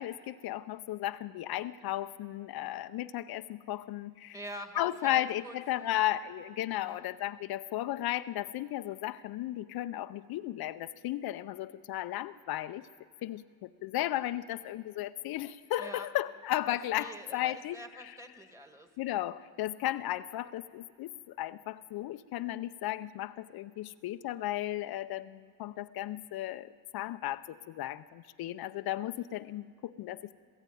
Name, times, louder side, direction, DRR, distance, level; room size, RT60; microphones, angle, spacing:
voice 1, 0.0-4.4 4.8-12.9 13.2-18.2 19.0-30.3, left 14 dB, 75° left, 12 dB, 0.6 m, -35 dB
voice 2, 4.3-6.0 6.7-7.0 15.8-16.1 16.7-18.9, right 1 dB, 10° right, 6 dB, 1.9 m, -46 dB
22.0 x 15.0 x 9.1 m, 2.1 s
cardioid pair, 110°, 37 cm